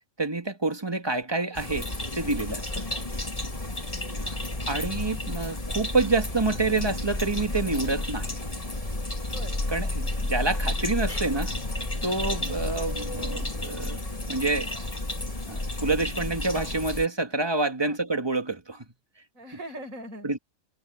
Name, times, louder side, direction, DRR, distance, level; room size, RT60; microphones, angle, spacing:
voice 1, 0.2-1.9 2.1-2.7 4.6-8.3 9.7-11.6 12.0-14.0 14.3-14.7 15.5-18.9 20.2-20.4, right 3 dB, 20° right, 1.9 m, -27 dB
sound 1, 1.6-17.1, left 2 dB, 25° left, 2.0 m, -31 dB
voice 2, 4.1-4.5 9.3-9.6 12.0-12.4 17.8-18.0 19.3-20.3, right 1 dB, 70° right, 5.8 m, -42 dB
omnidirectional pair, 1.5 m